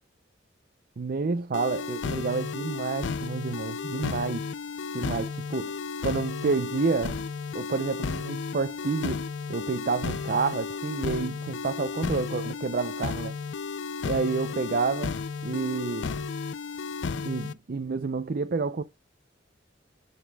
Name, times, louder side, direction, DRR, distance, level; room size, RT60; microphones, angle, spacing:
voice 1, 1.0-4.5 4.9-5.7 6.0-7.2 7.5-13.4 14.0-15.2 15.4-16.2 17.2-18.8, right 4 dB, 50° right, 0.5 m, -29 dB
sound 1, 1.5-17.5, left 5 dB, 70° left, 0.4 m, -33 dB
9.9 x 5.1 x 2.3 m
head